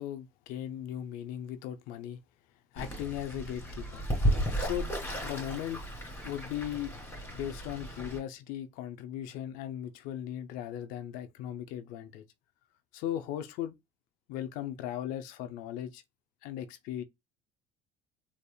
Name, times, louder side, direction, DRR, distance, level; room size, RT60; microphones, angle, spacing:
voice 1, 0.0-2.2 2.7-4.0 4.3-4.9 5.2-5.8 6.2-6.9 7.3-12.2 12.9-13.7 14.3-16.0 16.4-17.0, left 11 dB, 70° left, 0.5 m, -38 dB
Fowl / Bird, 2.8-8.2, equal, 15° left, 2.6 m, -34 dB
4.2 x 3.3 x 2.3 m
supercardioid pair, 90°, 15 cm